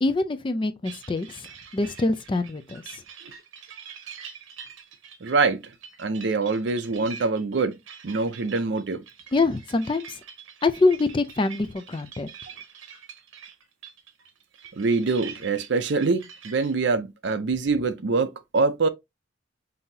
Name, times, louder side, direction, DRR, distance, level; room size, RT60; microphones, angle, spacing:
voice 1, 0.0-1.5 1.7-3.0 9.3-10.2 10.6-12.3, left 3 dB, 25° left, 0.3 m, -25 dB
sound 1, 0.8-16.7, right 7 dB, 80° right, 0.9 m, -45 dB
voice 2, 5.2-5.7 6.0-7.8 8.0-9.0 14.8-18.9, right 4 dB, 60° right, 0.5 m, -24 dB
5.6 x 2.7 x 2.7 m
head